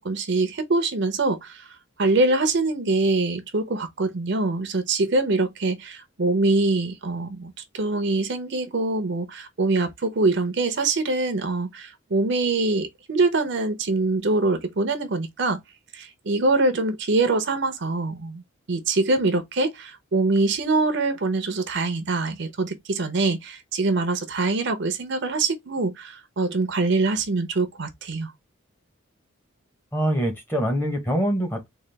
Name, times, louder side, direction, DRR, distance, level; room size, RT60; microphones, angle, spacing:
voice 1, 0.0-1.7 2.0-15.6 15.9-18.4 18.7-28.3, right 3 dB, 55° right, 0.6 m, -24 dB
voice 2, 29.9-31.7, right 1 dB, 10° left, 0.9 m, -24 dB
3.9 x 2.4 x 3.3 m
head